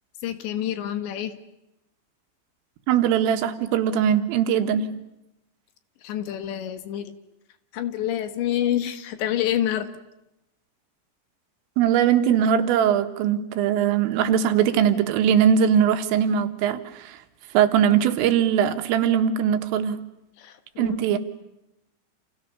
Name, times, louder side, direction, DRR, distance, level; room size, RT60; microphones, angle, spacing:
voice 1, 0.2-1.3 6.0-7.1 7.7-9.9 20.4-21.0, left 11 dB, 70° left, 10 dB, 3.4 m, -27 dB
voice 2, 2.9-4.9 11.8-17.2 17.5-20.0 20.8-21.2, right 8 dB, 85° right, 8 dB, 4.1 m, -21 dB
30.0 x 28.5 x 6.9 m, 0.89 s
omnidirectional pair, 5.8 m